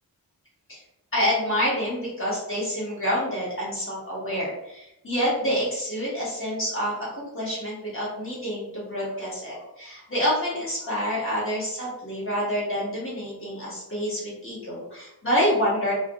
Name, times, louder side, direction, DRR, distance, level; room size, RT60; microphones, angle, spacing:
voice 1, 1.1-15.9, equal, 35° left, -7 dB, 1.0 m, -27 dB
2.4 x 2.2 x 2.8 m, 0.87 s
wide cardioid pair, 135°, 36 cm